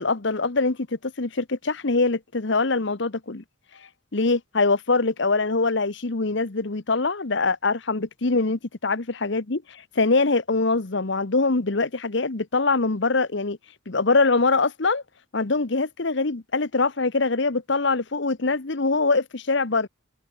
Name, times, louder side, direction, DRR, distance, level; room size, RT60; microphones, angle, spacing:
voice 1, 0.0-3.4 4.1-13.6 13.9-15.0 15.3-19.9, left 3 dB, 60° left, 1.1 m, -23 dB
head